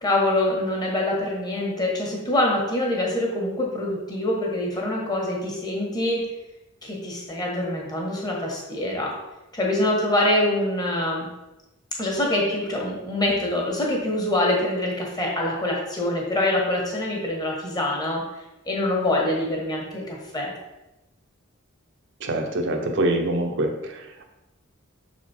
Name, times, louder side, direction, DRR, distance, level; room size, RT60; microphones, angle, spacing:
voice 1, 0.0-6.3 6.8-9.1 9.5-11.3 12.0-18.2 18.6-20.5, left 1 dB, 20° left, -2 dB, 1.5 m, -25 dB
voice 2, 22.2-23.7, right 1 dB, 60° right, 3 dB, 0.9 m, -24 dB
6.4 x 4.3 x 4.4 m, 0.98 s
head